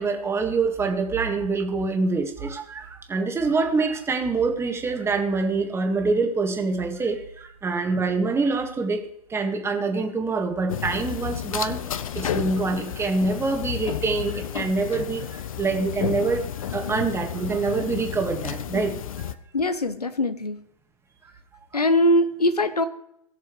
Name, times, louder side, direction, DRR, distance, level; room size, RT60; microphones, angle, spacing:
voice 1, 0.0-11.8 12.1-19.3 21.2-21.6, right 4 dB, 15° right, 4 dB, 1.7 m, -25 dB
sound 1, 10.7-19.4, left 9 dB, 60° left, 0.7 m, -32 dB
voice 2, 19.5-20.6 21.7-22.9, left 1 dB, 85° left, 11 dB, 1.2 m, -21 dB
20.0 x 6.8 x 3.2 m, 0.76 s
figure-of-eight pair, 105°, 19 cm